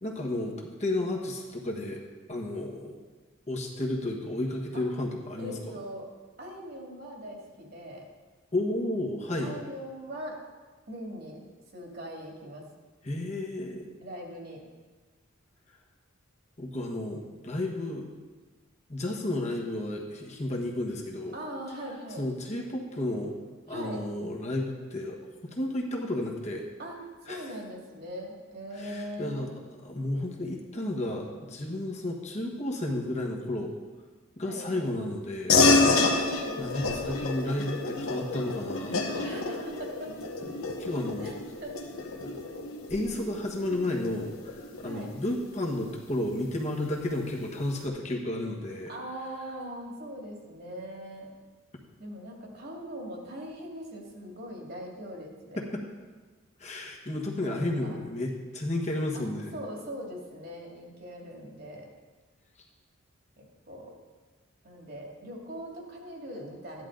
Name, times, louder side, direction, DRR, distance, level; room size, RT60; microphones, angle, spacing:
voice 1, 0.0-2.0 2.3-3.0 3.5-5.7 8.5-9.5 13.0-13.9 16.6-18.0 18.9-21.3 22.2-23.3 23.7-26.6 27.3-27.5 28.8-29.5 29.8-33.7 34.4-35.5 36.6-39.4 40.5-41.4 42.2-42.4 42.9-48.9 55.6-55.8 56.6-59.5, left 1 dB, 35° left, 0 dB, 1.3 m, -32 dB
voice 2, 5.4-6.1 6.4-8.1 9.4-10.4 10.9-11.4 11.7-12.7 14.0-14.6 21.3-22.2 23.7-24.0 26.8-29.7 34.4-34.9 35.9-37.0 39.2-40.7 41.2-41.3 41.6-41.8 44.8-45.1 48.9-51.3 52.0-55.6 57.4-58.0 59.1-61.9 63.4-63.9 64.6-66.9, equal, 50° right, -1 dB, 2.4 m, -41 dB
sound 1, 35.5-45.4, left 3 dB, 80° left, 1.4 m, -28 dB
14.0 x 11.0 x 3.9 m, 1.3 s
head